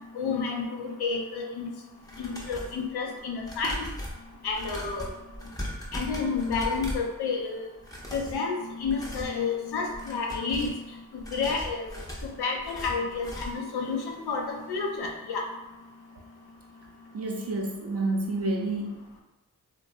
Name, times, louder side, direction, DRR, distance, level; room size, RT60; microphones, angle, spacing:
voice 1, 0.1-1.7 2.2-3.8 4.4-5.1 5.9-7.7 8.1-10.7 11.1-12.0 12.2-15.5, left 4 dB, 90° left, 1 dB, 0.6 m, -30 dB
sound 1, 2.0-2.8 3.4-7.1 7.8-8.4 8.8-9.4 9.8-10.8 11.2-13.7 14.0-14.1 14.5-14.6, equal, 10° left, 0.7 m, -38 dB
voice 2, 17.1-19.1, right 2 dB, 40° right, -1 dB, 0.6 m, -29 dB
2.9 x 2.2 x 2.6 m, 1.0 s
cardioid pair, 45°, 37 cm